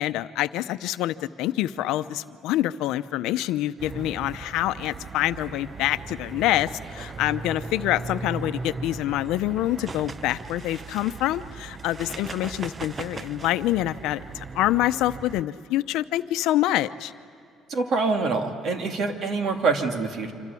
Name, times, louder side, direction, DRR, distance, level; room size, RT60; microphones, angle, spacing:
voice 1, 0.0-17.1, left 14 dB, 90° left, 11 dB, 0.7 m, -26 dB
sound 1, 3.8-15.4, right 4 dB, 25° right, 0.7 m, -38 dB
voice 2, 17.7-20.3, right 4 dB, 50° right, 4 dB, 2.6 m, -25 dB
27.0 x 26.0 x 8.4 m, 2.6 s
cardioid pair, 140°, 0 cm